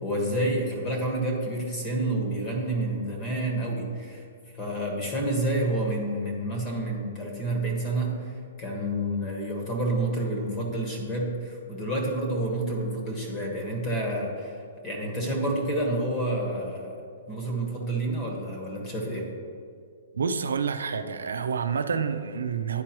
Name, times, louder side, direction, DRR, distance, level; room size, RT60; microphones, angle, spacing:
voice 1, 0.0-4.2 4.5-8.3 8.6-14.6 14.8-17.0 17.3-19.3, right 1 dB, 25° left, 0 dB, 1.5 m, -29 dB
voice 2, 20.1-22.8, right 6 dB, 90° right, 9 dB, 0.4 m, -28 dB
10.5 x 4.6 x 3.0 m, 2.3 s
hypercardioid pair, 150°, 0 cm